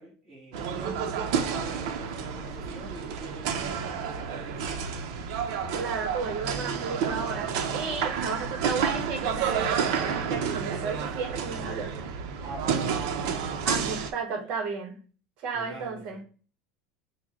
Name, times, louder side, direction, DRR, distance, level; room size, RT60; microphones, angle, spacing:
voice 1, 0.0-4.9 12.4-13.7 14.4-14.5 15.5-16.0, right 2 dB, 10° right, 1.6 m, -45 dB
sound 1, 0.5-14.1, right 6 dB, 65° right, 0.7 m, -30 dB
voice 2, 5.7-12.1 13.4-15.0 15.4-16.2, right 5 dB, 50° right, 1.1 m, -34 dB
6.0 x 2.2 x 3.6 m
supercardioid pair, 145°, 3 cm